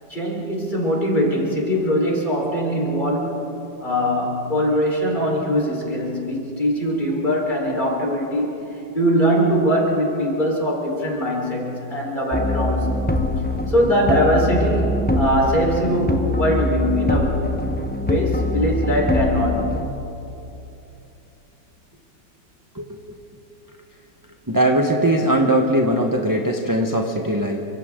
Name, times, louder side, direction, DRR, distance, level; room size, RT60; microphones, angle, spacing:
voice 1, 0.1-3.5 3.8-8.5 8.9-13.0 13.7-17.4 18.0-19.7, equal, 25° left, -2 dB, 4.4 m, -21 dB
sound 1, 12.3-19.9, left 2 dB, 10° left, 0.6 m, -23 dB
voice 2, 24.5-27.6, right 1 dB, 15° right, 1 dB, 0.9 m, -20 dB
29.0 x 25.5 x 3.8 m, 2.9 s
omnidirectional pair, 2.0 m